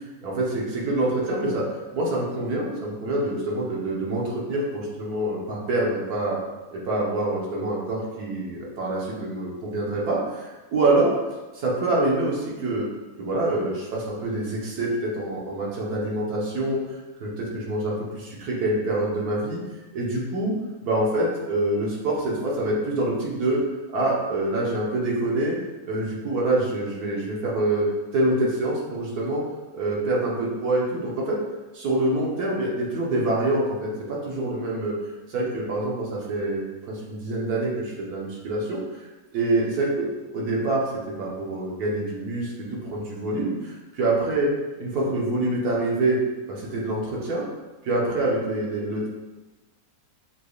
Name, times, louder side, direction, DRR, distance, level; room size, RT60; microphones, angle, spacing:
voice 1, 0.2-1.6 1.9-6.4 6.7-11.2 11.5-12.9 13.2-19.6 19.9-20.5 20.8-23.6 23.9-25.6 25.8-29.4 29.7-31.4 31.7-35.0 35.3-39.1 39.3-40.0 40.3-44.5 44.8-46.2 46.5-47.4 47.8-49.1, right 2 dB, 80° right, -4 dB, 1.6 m, -26 dB
6.4 x 3.4 x 2.4 m, 1.2 s
omnidirectional pair, 1.6 m